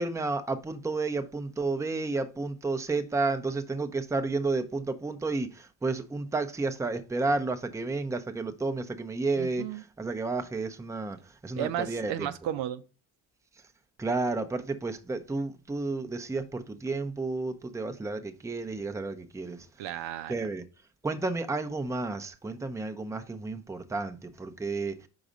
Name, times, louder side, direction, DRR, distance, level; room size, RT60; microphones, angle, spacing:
voice 1, 0.0-11.2 11.4-12.3 14.0-19.7 20.3-20.6 21.0-25.0, right 3 dB, 5° right, 0.6 m, -31 dB
voice 2, 9.4-9.8 11.6-12.8 19.8-20.3, right 11 dB, 70° right, 0.7 m, -33 dB
4.9 x 4.0 x 5.1 m
supercardioid pair, 65°, 47 cm